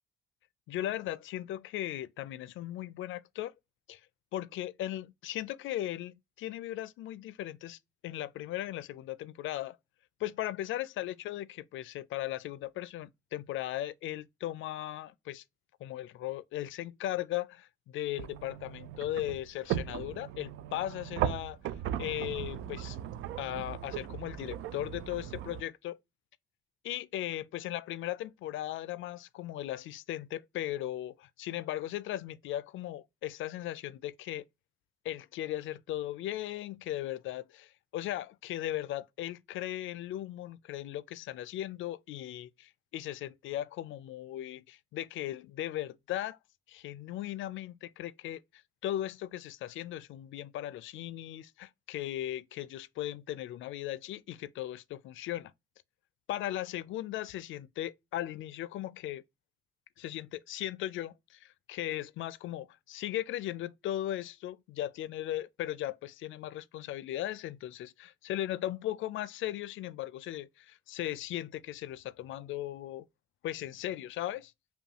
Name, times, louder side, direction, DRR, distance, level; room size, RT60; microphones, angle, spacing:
voice 1, 0.7-3.5 3.9-4.0 4.3-9.8 10.2-15.4 15.8-21.6 22.0-23.0 23.4-26.0 26.8-34.4 35.0-46.4 46.7-55.5 56.3-59.2 60.0-73.1 73.4-74.5, left 13 dB, 75° left, 0.4 m, -37 dB
sound 1, 18.1-25.6, right 11 dB, 85° right, 0.4 m, -37 dB
5.5 x 2.3 x 2.8 m
cardioid pair, 90°, 20 cm